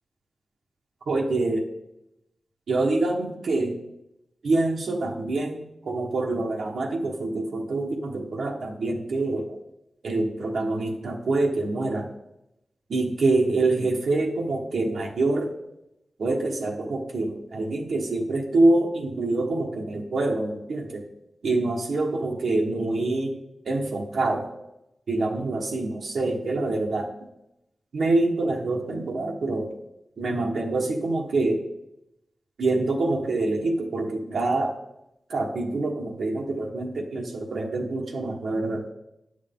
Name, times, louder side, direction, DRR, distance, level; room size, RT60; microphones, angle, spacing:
voice 1, 1.1-1.6 2.7-3.8 4.4-9.5 10.0-12.1 12.9-15.5 16.2-21.0 21.4-23.4 23.6-24.5 25.1-27.1 27.9-29.7 30.2-31.6 32.6-34.7 35.3-38.8, right 2 dB, 85° right, 0 dB, 1.3 m, -25 dB
10.0 x 6.5 x 3.7 m, 0.86 s
wide cardioid pair, 115°, 0 cm